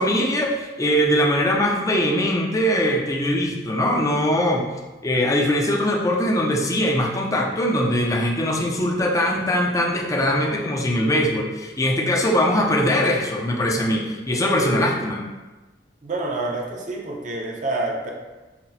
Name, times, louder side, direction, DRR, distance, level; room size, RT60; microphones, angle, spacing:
voice 1, 0.0-4.7 5.0-15.3, equal, 20° left, -1 dB, 0.4 m, -21 dB
voice 2, 16.0-18.1, right 2 dB, 40° right, -1 dB, 0.6 m, -27 dB
5.7 x 2.0 x 2.7 m, 1.2 s
head